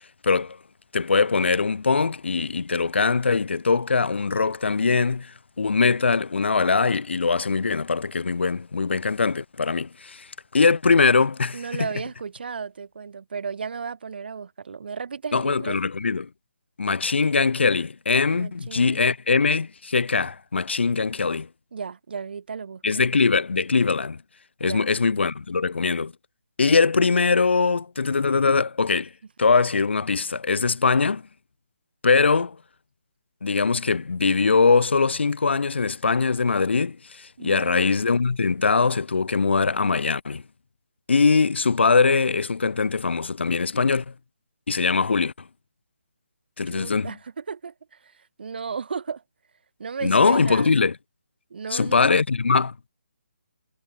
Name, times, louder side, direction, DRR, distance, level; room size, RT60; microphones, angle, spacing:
voice 1, 0.2-0.6 0.9-11.9 15.3-16.3 16.8-21.5 22.8-24.2 24.6-26.1 26.6-29.1 29.4-31.2 32.0-32.6 33.4-40.4 41.1-44.0 44.7-45.3 46.6-47.2 50.0-51.0 51.7-52.9, left 4 dB, 70° left, 2.1 m, -22 dB
voice 2, 11.5-15.8 18.3-19.0 21.7-22.8 24.6-24.9 37.4-37.8 46.7-49.2 49.8-50.7 51.5-52.1, right 5 dB, 55° right, 5.2 m, -34 dB
hypercardioid pair, 160°, 6 cm